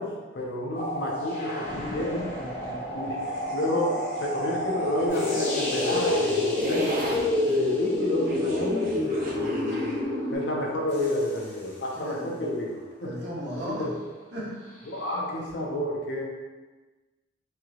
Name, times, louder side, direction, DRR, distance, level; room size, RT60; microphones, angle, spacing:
voice 1, 0.0-2.3 2.9-3.2 3.5-7.1 7.5-9.0 9.7-9.8 10.3-13.2 13.5-13.9 14.8-16.2, left 1 dB, 80° left, -2 dB, 0.6 m, -30 dB
sound 1, 0.7-8.3 9.1-12.1 14.7-15.2, equal, 40° left, 0.6 m, -35 dB
sound 2, 1.7-2.7 3.2-10.0, right 2 dB, 50° right, 0.5 m, -39 dB
voice 2, 2.3-2.8 7.0-7.2 9.4-9.5 12.0-12.5 13.0-13.9 14.3-14.7, equal, 70° right, -5 dB, 0.9 m, -36 dB
sound 3, 5.1-10.3, left 2 dB, 20° left, 1.2 m, -27 dB
3.3 x 2.8 x 2.4 m, 1.3 s
head